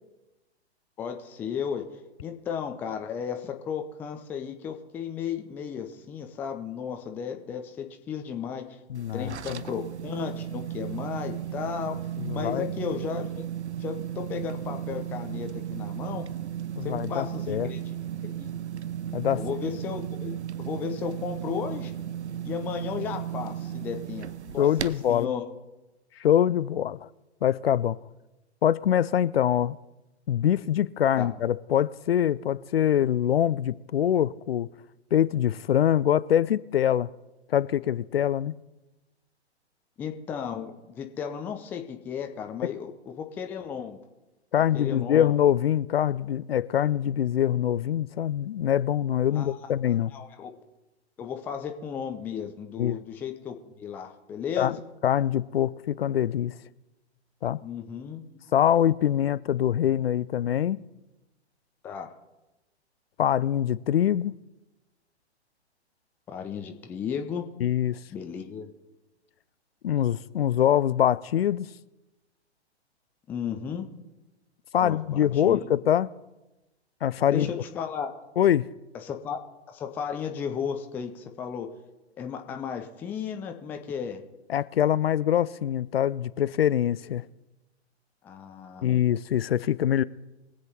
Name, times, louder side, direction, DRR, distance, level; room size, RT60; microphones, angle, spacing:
voice 1, 1.0-1.8 2.2-8.8 9.1-12.0 12.3-13.4 13.8-16.3 16.8-17.8 18.4-18.5 19.4-20.3 20.6-21.9 22.4-24.7 25.1-25.4 31.2-31.3 40.0-42.9 43.2-44.0 44.7-45.3 49.3-49.7 50.1-50.6 51.2-54.8 57.6-58.4 61.8-62.1 66.3-67.5 68.1-68.7 73.3-73.9 74.8-75.7 77.3-78.1 79.0-79.4 79.7-81.7 82.2-84.2 88.2-88.9, left 7 dB, 5° left, 0.4 m, -34 dB
voice 2, 8.9-9.6 12.2-12.6 16.8-17.7 19.1-19.4 24.6-25.3 26.2-27.1 27.4-28.0 28.6-29.8 30.3-34.7 35.1-37.1 37.5-38.6 42.6-42.7 44.5-50.1 52.8-53.0 54.6-54.7 55.0-56.5 57.4-57.6 58.5-60.8 63.2-64.4 67.6-68.0 69.8-71.7 74.7-76.1 77.0-77.5 78.4-78.7 84.5-87.2 88.8-90.0, left 10 dB, 60° left, 0.5 m, -24 dB
sound 1, 9.0-25.2, right 10 dB, 80° right, 0.6 m, -35 dB
23.0 x 7.9 x 4.1 m
figure-of-eight pair, 115°, 33 cm